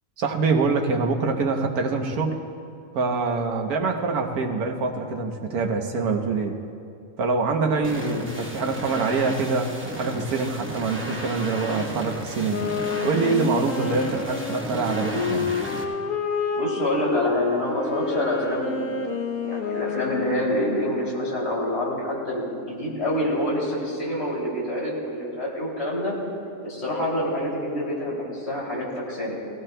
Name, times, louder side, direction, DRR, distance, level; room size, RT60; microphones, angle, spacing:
voice 1, 0.2-2.4 2.9-6.6 7.2-12.6 13.0-15.5, right 4 dB, 85° right, 3 dB, 1.4 m, -25 dB
sound 1, 7.8-15.8, right 1 dB, 10° right, 0.8 m, -35 dB
Wind instrument woodwind instrument, 12.4-20.8, left 5 dB, 85° left, 1.3 m, -29 dB
voice 2, 16.5-18.9 19.4-26.1 26.6-29.4, left 1 dB, 45° left, -5 dB, 3.0 m, -27 dB
17.5 x 16.0 x 2.2 m, 2.5 s
omnidirectional pair, 1.5 m